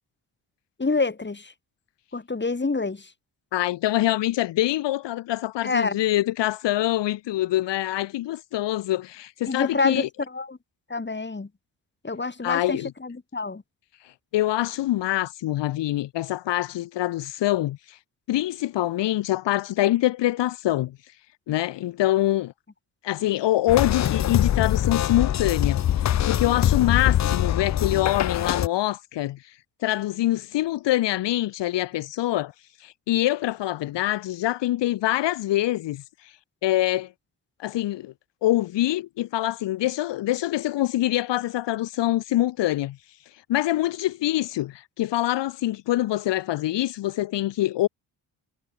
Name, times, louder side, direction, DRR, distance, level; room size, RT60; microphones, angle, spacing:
voice 1, 0.8-1.5 2.1-3.1 5.6-6.0 9.5-10.6 10.9-11.5 12.0-13.6, left 3 dB, 25° left, 7.3 m, -27 dB
voice 2, 3.5-10.1 12.4-12.9 14.0-18.0 18.3-21.0 21.5-22.5 23.0-32.5 32.8-36.3 36.6-37.1 37.6-38.1 38.4-43.0 43.5-47.9, left 15 dB, 80° left, 1.8 m, -25 dB
sound 1, 23.7-28.7, left 11 dB, 40° left, 0.6 m, -23 dB
cardioid pair, 75°, 42 cm